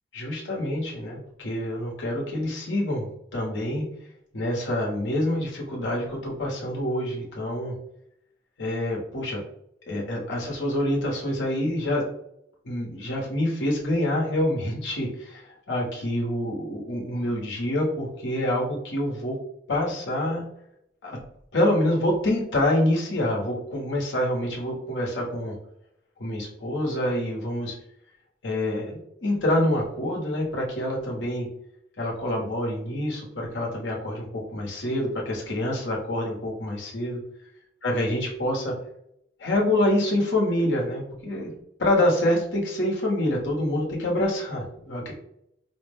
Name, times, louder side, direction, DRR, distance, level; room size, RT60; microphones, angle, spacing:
voice 1, 0.1-3.9 4.3-7.7 8.6-9.4 9.9-12.0 12.6-19.4 19.7-20.5 21.0-21.2 21.5-25.5 26.2-27.8 28.4-31.5 32.0-37.2 37.8-38.7 39.4-41.5 41.8-45.1, left 1 dB, 90° left, -2 dB, 1.1 m, -26 dB
4.7 x 2.1 x 3.4 m, 0.74 s
head